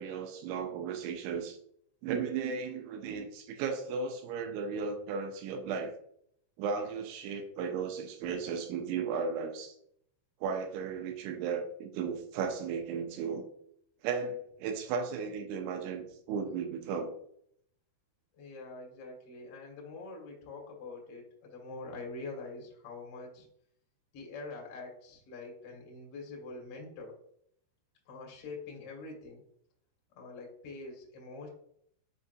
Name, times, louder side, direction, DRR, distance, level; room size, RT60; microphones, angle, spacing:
voice 1, 0.0-1.6 2.0-5.9 6.6-9.7 10.4-13.5 14.0-17.1, right 5 dB, 85° right, 4 dB, 3.1 m, -35 dB
voice 2, 18.4-23.5 24.1-27.2 28.0-29.4 30.1-31.5, left 3 dB, 60° left, 0 dB, 1.5 m, -45 dB
7.2 x 5.4 x 2.5 m, 0.68 s
omnidirectional pair, 5.5 m